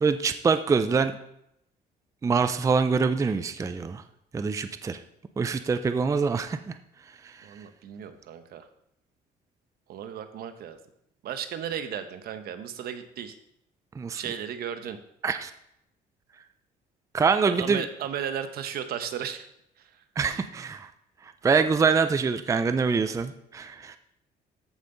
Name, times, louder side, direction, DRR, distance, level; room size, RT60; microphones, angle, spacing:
voice 1, 0.0-1.1 2.2-4.0 4.3-5.0 5.4-6.7 7.2-7.3 14.0-14.2 15.2-15.5 17.1-17.8 20.2-20.9 21.4-24.0, right 5 dB, 20° right, 10 dB, 0.4 m, -25 dB
voice 2, 7.4-8.7 9.9-10.8 11.2-13.4 14.1-15.0 17.4-19.5 19.8-20.0, right 8 dB, 65° right, 9 dB, 1.0 m, -35 dB
14.0 x 5.5 x 3.9 m, 0.77 s
cardioid pair, 110°, 17 cm